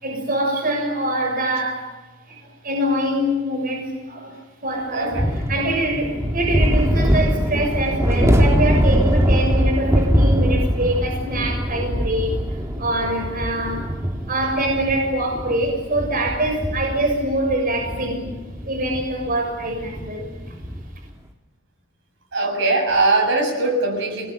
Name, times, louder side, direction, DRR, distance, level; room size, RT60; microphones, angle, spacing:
voice 1, 0.0-1.9 2.3-2.4 2.6-4.3 4.6-13.9 14.3-18.3 18.6-20.3, right 1 dB, 45° right, 1 dB, 6.6 m, -24 dB
voice 2, 4.9-5.3 18.0-18.2 22.3-24.3, right 2 dB, 65° right, 2 dB, 7.3 m, -21 dB
sound 1, 5.1-20.9, equal, 15° right, 2.2 m, -22 dB
28.5 x 20.5 x 9.9 m, 1.2 s
head